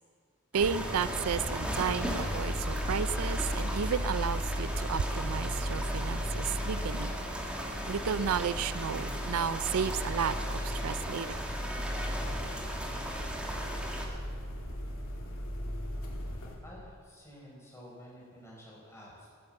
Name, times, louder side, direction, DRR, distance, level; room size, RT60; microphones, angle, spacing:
sound 1, 0.5-14.1, equal, 5° right, 1.6 m, -38 dB
voice 1, 0.5-7.1 7.9-11.4, right 7 dB, 80° right, 16 dB, 0.4 m, -33 dB
sound 2, 0.6-16.5, equal, 65° left, 2.9 m, -36 dB
voice 2, 16.6-19.3, equal, 10° left, -5 dB, 5.1 m, -51 dB
16.0 x 11.0 x 7.4 m, 2.1 s
head